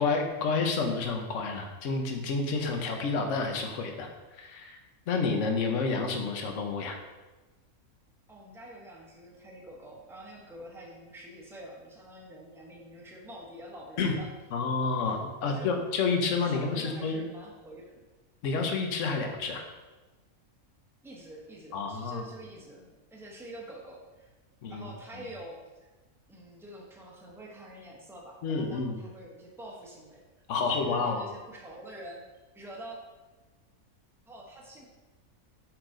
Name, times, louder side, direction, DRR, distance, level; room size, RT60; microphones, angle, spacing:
voice 1, 0.0-4.8 5.1-7.0 14.0-14.1 14.5-17.2 18.4-19.6 21.7-22.2 24.6-24.9 25.2-25.3 28.4-29.0 30.5-31.3, left 4 dB, 60° left, 4 dB, 1.1 m, -29 dB
voice 2, 8.3-14.3 15.0-15.7 16.4-18.1 21.0-22.9 23.1-24.3 24.7-25.9 26.3-30.2 30.6-32.2 32.5-33.0 34.3-34.9, right 1 dB, ahead, -2 dB, 0.7 m, -46 dB
5.9 x 4.7 x 3.8 m, 1.2 s
omnidirectional pair, 1.5 m